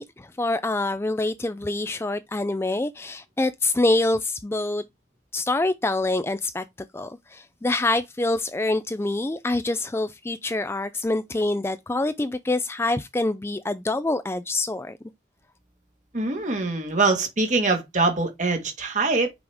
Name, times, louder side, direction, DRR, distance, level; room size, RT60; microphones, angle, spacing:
voice 1, 0.0-4.8 5.3-6.6 6.9-15.0, left 2 dB, 15° left, 0.3 m, -26 dB
voice 2, 16.1-19.3, right 3 dB, 40° right, 1.7 m, -23 dB
6.1 x 4.9 x 3.5 m
head